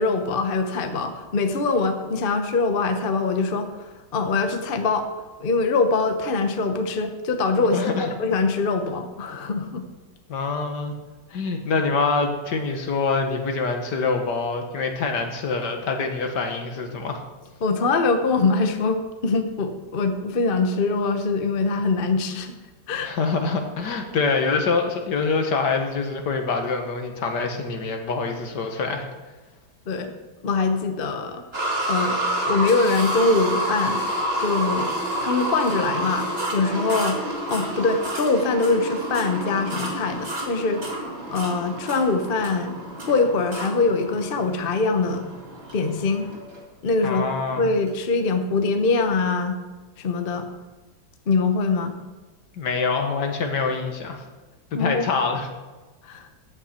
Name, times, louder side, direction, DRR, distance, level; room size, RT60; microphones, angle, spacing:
voice 1, 0.0-3.7 4.1-9.8 17.6-22.5 22.9-23.1 29.9-30.1 30.4-31.4 31.9-34.0 34.4-34.9 35.2-37.2 37.5-40.8 41.3-42.8 43.1-45.3 45.7-46.3 46.8-47.2 47.5-49.6 50.0-50.5 51.3-52.0 54.8-55.0 56.0-56.3, left 3 dB, 40° left, 6 dB, 0.9 m, -23 dB
voice 2, 7.7-8.1 10.3-10.9 11.3-17.2 23.0-29.1 47.0-47.6 52.6-54.3 54.7-55.5, left 4 dB, 65° left, 4 dB, 1.9 m, -25 dB
sound 1, 31.5-46.6 47.3-47.4 47.9-48.0, right 1 dB, 35° right, 2.4 m, -29 dB
14.5 x 8.8 x 4.3 m, 1.2 s
omnidirectional pair, 2.0 m